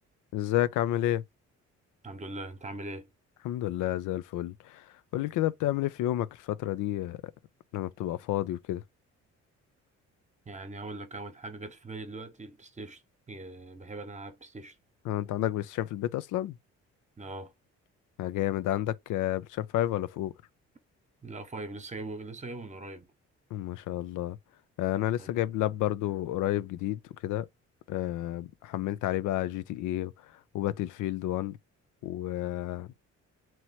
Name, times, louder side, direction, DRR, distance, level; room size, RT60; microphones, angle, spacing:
voice 1, 0.3-1.2 3.4-4.8 5.1-7.3 7.7-8.8 15.1-16.5 18.2-20.3 23.5-24.4 24.8-27.5 27.9-30.1 30.5-31.6 32.0-32.9, left 13 dB, 85° left, 0.5 m, -30 dB
voice 2, 2.0-3.1 10.5-13.0 13.3-14.7 17.2-17.5 21.2-23.1 25.2-25.3, right 2 dB, 25° right, 1.0 m, -41 dB
3.0 x 3.0 x 4.2 m
cardioid pair, 90°, 30 cm